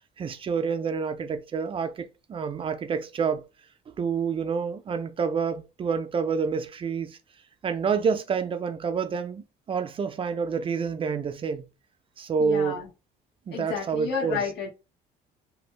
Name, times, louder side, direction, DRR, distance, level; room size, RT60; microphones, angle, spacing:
voice 1, 0.2-3.4 4.0-7.2 7.6-11.7 12.2-12.8 13.5-14.4, right 6 dB, 30° right, 0.4 m, -28 dB
voice 2, 12.4-12.9 13.5-14.7, left 6 dB, 70° left, 1.0 m, -31 dB
2.5 x 2.1 x 3.2 m
cardioid pair, 135°, 18 cm